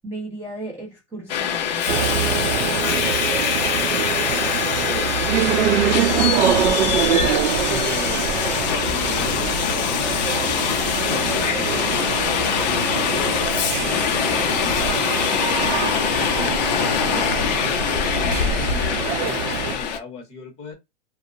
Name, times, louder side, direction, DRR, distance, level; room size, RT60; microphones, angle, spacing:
voice 1, 0.0-3.6 5.8-6.7, right 1 dB, 5° right, 0.7 m, -35 dB
Subway metro underground, 1.3-20.0, left 8 dB, 40° left, 0.4 m, -23 dB
sound 1, 1.9-19.8, right 9 dB, 70° right, 0.6 m, -25 dB
voice 2, 3.7-5.5 7.7-8.3 8.8-9.6 9.8-10.3 10.8-11.7 13.0-15.1 16.1-17.6 18.1-20.7, left 4 dB, 15° left, 1.0 m, -38 dB
sound 2, 14.3-19.5, right 3 dB, 30° right, 1.0 m, -46 dB
2.7 x 2.0 x 2.4 m
hypercardioid pair, 150°, 36 cm